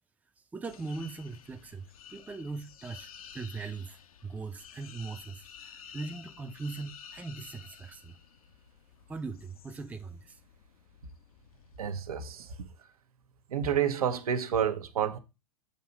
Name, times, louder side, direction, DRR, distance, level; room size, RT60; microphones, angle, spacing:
voice 1, 0.5-8.2 9.1-10.4, right 4 dB, 10° right, 0.5 m, -40 dB
sound 1, 0.6-12.0, left 8 dB, 75° left, 0.7 m, -52 dB
voice 2, 11.8-12.9 13.5-15.2, right 8 dB, 75° right, 0.8 m, -30 dB
6.5 x 2.8 x 5.1 m
hypercardioid pair, 100°, 19 cm